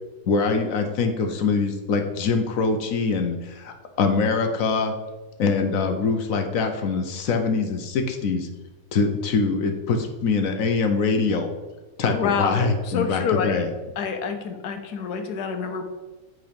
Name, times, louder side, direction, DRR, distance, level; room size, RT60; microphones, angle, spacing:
voice 1, 0.3-4.9 5.4-8.5 8.9-11.5 12.0-13.7, left 4 dB, 65° left, 5 dB, 1.0 m, -23 dB
voice 2, 12.0-13.6 14.0-15.8, left 6 dB, 85° left, 6 dB, 1.4 m, -27 dB
7.7 x 3.9 x 5.1 m, 1.1 s
omnidirectional pair, 1.6 m